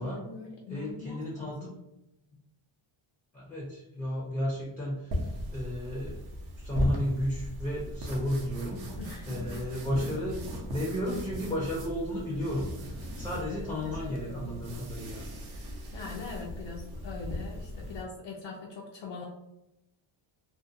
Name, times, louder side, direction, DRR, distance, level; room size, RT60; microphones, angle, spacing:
voice 1, 0.0-1.8 9.0-10.4 13.3-14.7 15.5-19.3, left 4 dB, 60° left, -2 dB, 0.5 m, -43 dB
voice 2, 0.7-1.7 3.3-6.2 6.6-8.8 9.3-10.3 10.7-15.2, equal, 5° left, -5 dB, 0.5 m, -33 dB
sound 1, 5.1-18.0, equal, 50° right, 0.6 m, -38 dB
2.5 x 2.2 x 2.5 m, 0.89 s
cardioid pair, 140°, 50 cm